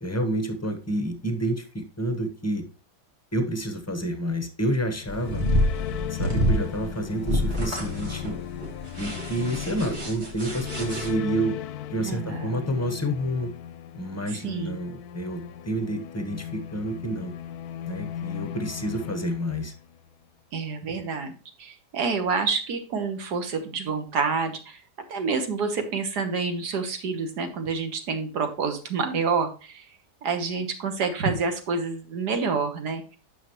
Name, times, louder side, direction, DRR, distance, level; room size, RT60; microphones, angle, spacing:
voice 1, 0.0-2.6 3.3-5.4 6.1-8.4 9.0-11.6 11.9-13.5 13.9-17.3 17.9-19.7, right 1 dB, 15° left, 7 dB, 0.6 m, -29 dB
sound 1, 4.9-20.1, left 10 dB, 70° left, 1.0 m, -37 dB
sound 2, 5.1-11.1, equal, 40° right, 2.2 m, -27 dB
voice 2, 12.0-12.7 14.4-14.8 20.5-21.3 21.6-24.8 25.1-29.9 30.2-33.2, right 5 dB, 70° right, 7 dB, 1.7 m, -28 dB
9.2 x 6.2 x 3.0 m, 0.35 s
omnidirectional pair, 1.8 m